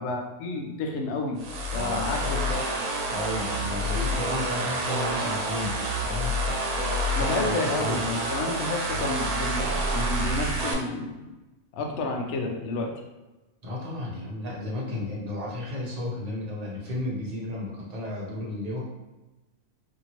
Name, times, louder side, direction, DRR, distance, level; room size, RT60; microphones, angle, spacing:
voice 1, 0.0-1.4 1.7-2.6 7.1-11.3 11.7-12.9, left 3 dB, 70° left, 1 dB, 0.6 m, -30 dB
sound 1, 1.4-10.7, right 1 dB, 75° right, 1.0 m, -28 dB
voice 2, 1.7-2.2 3.1-6.4 7.1-8.1 13.6-18.8, left 1 dB, 40° right, -5 dB, 0.6 m, -33 dB
2.7 x 2.6 x 2.9 m, 1.1 s
omnidirectional pair, 1.6 m